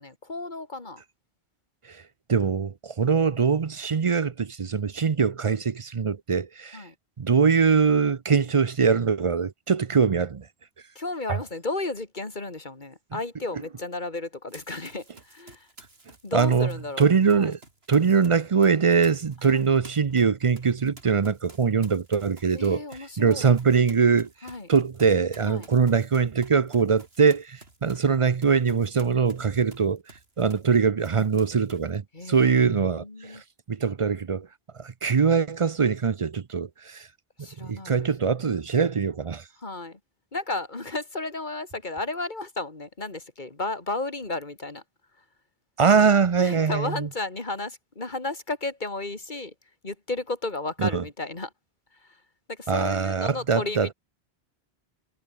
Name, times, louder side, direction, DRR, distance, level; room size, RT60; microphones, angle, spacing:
voice 1, 0.0-1.0 6.7-6.9 10.9-15.7 16.2-17.1 17.3-17.5 19.5-19.6 22.5-23.5 24.4-24.7 25.4-25.7 32.1-33.4 37.4-38.1 39.6-40.0 40.3-44.8 46.4-49.5 49.8-51.5 52.0-52.2 52.5-53.9, left 2 dB, 50° left, 2.9 m, -33 dB
voice 2, 2.3-6.9 7.2-10.5 11.3-11.4 16.3-16.7 17.0-17.6 17.9-22.8 23.2-24.3 24.7-30.0 30.4-32.0 32.3-33.4 33.7-34.5 34.7-37.1 37.6-39.4 45.8-47.1 50.8-51.0 52.7-53.9, right 5 dB, 35° right, 0.6 m, -22 dB
Run, 14.5-18.3 18.6-30.8 31.0-32.0, right 2 dB, 75° right, 3.6 m, -52 dB
omnidirectional pair, 1.1 m